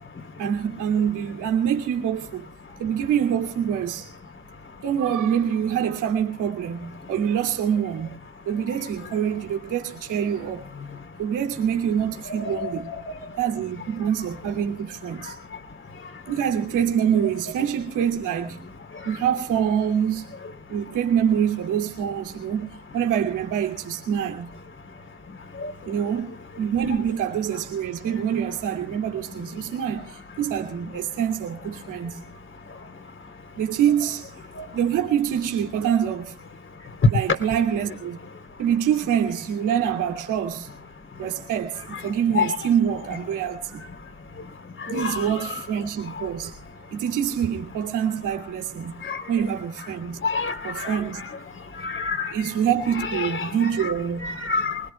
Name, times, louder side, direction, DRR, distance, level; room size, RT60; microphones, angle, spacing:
voice 1, 0.4-2.5 2.7-4.1 4.8-8.1 8.4-10.6 11.2-12.9 13.4-15.4 16.3-18.6 19.0-20.3 20.7-24.6 25.8-32.3 33.6-34.3 34.7-36.4 37.1-38.2 38.6-40.7 41.2-43.8 44.9-46.6 46.9-50.2 50.6-51.2 52.3-54.4, right 8 dB, 85° right, 2.5 m, -25 dB
voice 2, 12.3-13.0 42.3-42.6 44.9-45.2 49.1-49.2 50.2-51.0 51.8-52.3 53.0-53.9 54.2-54.8, left 5 dB, 40° left, 3.4 m, -28 dB
27.0 x 20.5 x 2.3 m
cardioid pair, 90°, 30 cm